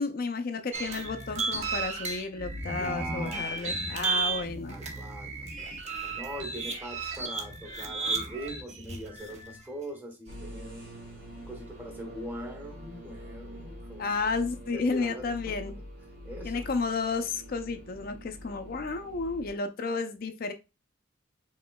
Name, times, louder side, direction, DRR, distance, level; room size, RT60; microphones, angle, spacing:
voice 1, 0.0-4.8 14.0-15.8 16.4-20.5, left 4 dB, 45° left, 0.4 m, -32 dB
sound 1, 0.7-9.6, right 4 dB, 35° right, 0.9 m, -34 dB
voice 2, 2.8-3.7 4.7-10.9 11.4-14.1 14.7-15.8 16.2-16.7, right 1 dB, 10° right, 1.1 m, -42 dB
sound 2, 10.3-19.5, equal, 55° right, 2.5 m, -45 dB
5.0 x 3.7 x 2.3 m
head